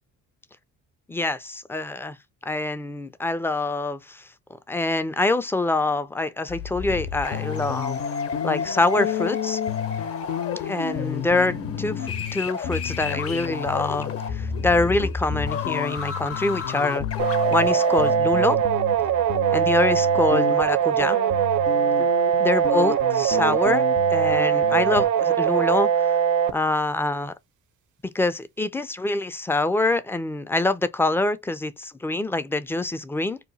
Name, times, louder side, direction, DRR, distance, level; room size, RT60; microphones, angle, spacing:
voice 1, 1.1-2.2 2.4-4.3 4.7-8.0 8.4-9.6 10.7-17.1 17.5-18.6 19.5-21.2 22.4-23.8 24.1-26.1 26.5-27.3 28.0-33.4, left 2 dB, 10° left, 0.3 m, -25 dB
sound 1, 6.5-18.2, left 5 dB, 50° left, 0.7 m, -31 dB
sound 2, 6.9-7.0 7.3-17.7 18.0-25.1, left 11 dB, 85° left, 0.5 m, -32 dB
sound 3, 17.2-26.5, right 8 dB, 75° right, 0.6 m, -21 dB
2.8 x 2.2 x 3.9 m
cardioid pair, 90°, 30 cm